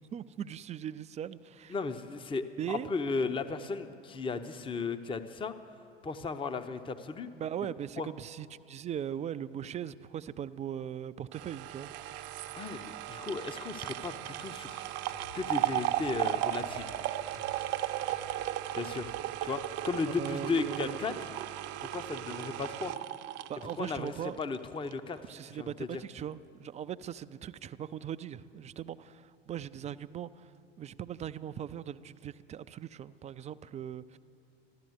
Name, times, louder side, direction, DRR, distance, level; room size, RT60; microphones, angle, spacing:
voice 1, 0.1-1.8 2.6-2.9 7.3-12.3 20.1-21.0 23.5-24.3 25.2-34.2, right 9 dB, 20° right, 14 dB, 0.4 m, -39 dB
voice 2, 1.7-5.5 6.0-7.3 8.0-8.1 12.5-14.8 15.3-17.0 18.7-19.1 19.4-21.1 21.8-22.9 23.6-25.2 25.6-26.0, left 4 dB, 15° left, 9 dB, 0.7 m, -35 dB
sound 1, 11.3-24.6 24.9-25.0, right 13 dB, 50° right, 0.7 m, -36 dB
sound 2, 14.6-17.0 17.3-19.2 20.0-20.1, left 6 dB, 55° left, 1.2 m, -53 dB
13.5 x 12.5 x 7.9 m, 2.7 s
hypercardioid pair, 80°, 32 cm